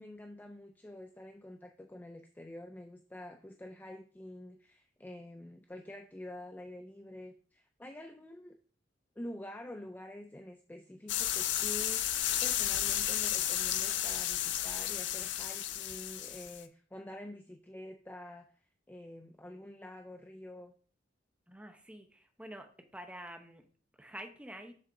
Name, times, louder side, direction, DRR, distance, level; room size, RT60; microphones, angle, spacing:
voice 1, 0.0-8.6 9.2-12.1 12.4-18.5 18.9-20.7, left 1 dB, 10° left, 6 dB, 0.3 m, -47 dB
Fizzy Drink, 11.1-16.6, left 11 dB, 65° left, 0.5 m, -33 dB
voice 2, 21.5-22.7 22.9-23.6 24.0-24.7, right 1 dB, 5° right, 5 dB, 0.8 m, -47 dB
7.4 x 6.3 x 2.6 m, 0.43 s
head